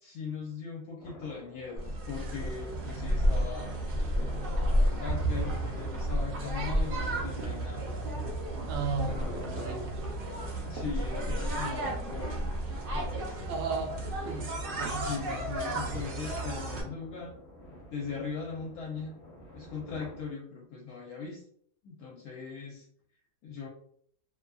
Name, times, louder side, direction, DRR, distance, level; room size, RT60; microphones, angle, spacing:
voice 1, 0.0-7.9 10.7-12.5 12.9-13.4 15.0-17.4 17.9-19.1 19.5-21.4 21.8-22.9 23.4-23.7, left 5 dB, 75° left, -1 dB, 1.0 m, -40 dB
sound 1, 1.0-20.3, left 1 dB, 50° left, 0.9 m, -49 dB
sound 2, 1.8-16.8, right 1 dB, 90° right, 0.4 m, -32 dB
voice 2, 8.7-10.0 13.5-13.9 14.3-14.4 14.8-15.0, right 4 dB, 65° right, 1 dB, 0.8 m, -34 dB
2.7 x 2.5 x 2.2 m, 0.62 s
omnidirectional pair, 1.7 m